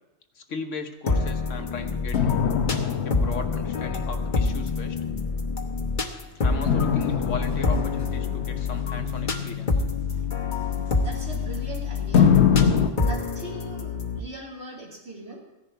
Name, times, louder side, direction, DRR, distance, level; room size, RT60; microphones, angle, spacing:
voice 1, 0.3-2.2 3.0-5.0 6.4-9.8, left 4 dB, 85° left, 6 dB, 1.4 m, -36 dB
sound 1, 1.1-14.2, left 4 dB, 45° left, 1.2 m, -27 dB
sound 2, 2.1-5.8 6.7-11.7 12.1-12.9, left 7 dB, 65° left, 1.1 m, -25 dB
voice 2, 11.0-12.3 13.0-15.4, right 1 dB, 65° right, -4 dB, 3.4 m, -39 dB
15.5 x 10.5 x 4.6 m, 0.98 s
omnidirectional pair, 1.3 m